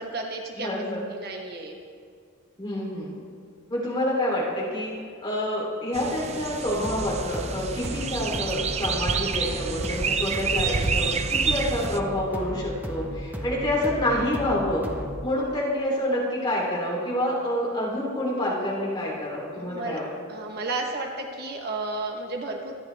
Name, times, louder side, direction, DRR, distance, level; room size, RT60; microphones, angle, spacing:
voice 1, 0.0-0.7 1.1-1.8 19.5-20.0 20.3-22.7, right 2 dB, 45° right, 2 dB, 1.1 m, -32 dB
voice 2, 0.6-1.0 2.6-3.2 3.7-4.9 5.2-14.9 15.2-20.1, left 1 dB, 20° left, -5 dB, 3.3 m, -27 dB
sound 1, 5.9-12.0, right 5 dB, 30° right, 0.5 m, -28 dB
sound 2, 6.8-15.3, equal, 10° right, 0.9 m, -35 dB
25.5 x 9.7 x 3.4 m, 2.1 s
head